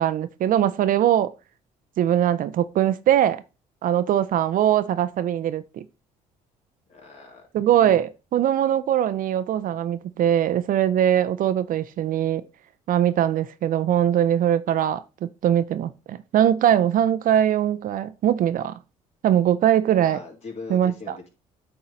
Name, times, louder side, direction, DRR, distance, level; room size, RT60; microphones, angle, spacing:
voice 1, 0.0-1.3 2.0-3.4 3.8-5.9 7.5-12.4 12.9-18.8 19.2-20.2 20.7-21.2, right 10 dB, 60° right, 0.6 m, -21 dB
voice 2, 6.9-7.4 7.7-8.0 20.0-21.3, left 4 dB, 45° left, 3.0 m, -40 dB
8.8 x 3.8 x 4.1 m
supercardioid pair, 70°, 16 cm